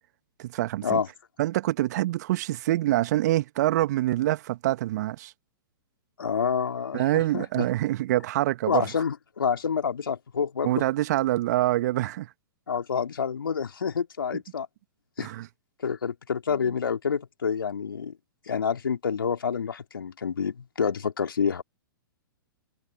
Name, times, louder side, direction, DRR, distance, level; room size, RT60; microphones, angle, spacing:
voice 1, 0.4-1.0 1.4-5.3 6.9-8.8 10.6-12.3 15.2-15.5, right 15 dB, 50° right, 1.5 m, -25 dB
voice 2, 6.2-7.7 8.7-10.8 12.7-14.7 15.2-15.3 15.8-18.1 18.5-21.6, left 6 dB, 70° left, 3.2 m, -28 dB
figure-of-eight pair, 110°, 12 cm